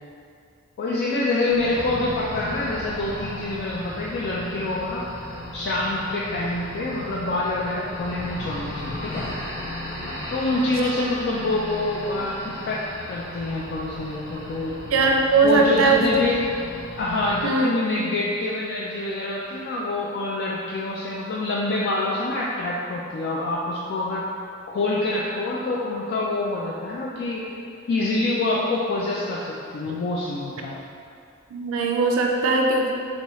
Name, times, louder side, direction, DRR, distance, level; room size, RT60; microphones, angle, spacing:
voice 1, 0.8-5.1 5.5-9.3 10.3-14.7 15.4-16.4 17.0-24.2 24.7-27.4 27.9-30.8, left 2 dB, 50° left, -4 dB, 0.3 m, -26 dB
sound 1, 1.5-17.5, left 1 dB, 75° left, 1.1 m, -36 dB
voice 2, 14.9-16.1 17.4-17.7 29.9-30.0 31.5-32.9, right 3 dB, 70° right, 1 dB, 0.4 m, -20 dB
4.1 x 2.3 x 3.0 m, 2.4 s
head